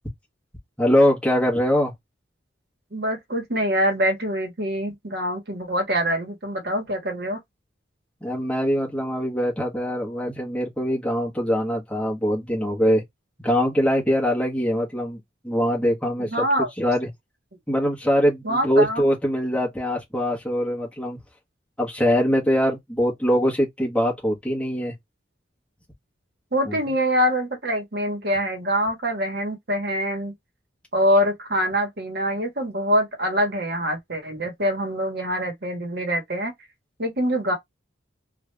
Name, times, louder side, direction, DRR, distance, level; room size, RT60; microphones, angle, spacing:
voice 1, 0.8-1.9 8.2-13.0 13.4-16.4 16.8-17.1 17.7-21.2 21.8-24.9 26.7-26.8, equal, 5° left, 1.3 m, -22 dB
voice 2, 2.9-7.4 16.2-16.7 18.4-19.0 26.5-30.3 30.9-36.5 37.0-37.5, equal, 55° right, 1.2 m, -24 dB
3.2 x 2.5 x 3.2 m
head